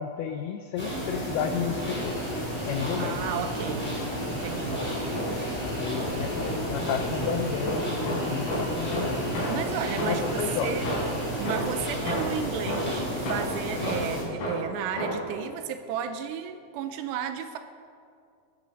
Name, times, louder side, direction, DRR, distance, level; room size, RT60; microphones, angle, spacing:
voice 1, 0.0-2.2 2.7-3.3 5.6-9.7 10.1-11.0, left 8 dB, 85° left, 6 dB, 2.2 m, -32 dB
sound 1, 0.8-14.2, equal, 5° left, 2.7 m, -33 dB
sound 2, 1.8-11.9, right 2 dB, 60° right, 5.6 m, -38 dB
voice 2, 3.0-3.9 4.3-4.8 9.5-10.9 11.4-17.6, right 8 dB, 80° right, 9 dB, 2.6 m, -33 dB
sound 3, 4.5-5.6 5.9-10.4 10.8-15.4, equal, 55° left, 5.1 m, -33 dB
17.0 x 10.5 x 5.2 m, 2.4 s
omnidirectional pair, 5.2 m